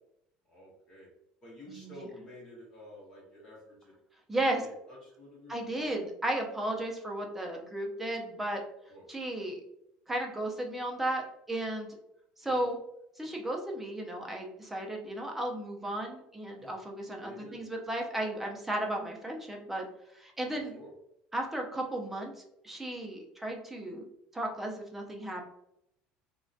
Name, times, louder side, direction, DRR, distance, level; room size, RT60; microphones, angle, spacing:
voice 1, 0.5-1.1 1.4-3.9 4.5-5.9 6.7-6.8 8.9-9.0 12.4-12.6 16.6-16.7 17.2-17.6 20.4-20.9, left 1 dB, 25° left, -5 dB, 0.8 m, -51 dB
voice 2, 1.7-2.1 4.3-4.6 5.5-8.6 9.1-9.6 10.1-11.9 12.4-12.8 13.2-19.8 20.1-20.8 21.3-22.3 22.6-24.0 24.3-25.4, right 1 dB, 5° right, 1 dB, 0.4 m, -34 dB
2.5 x 2.1 x 2.3 m, 0.79 s
cardioid pair, 165°, 3 cm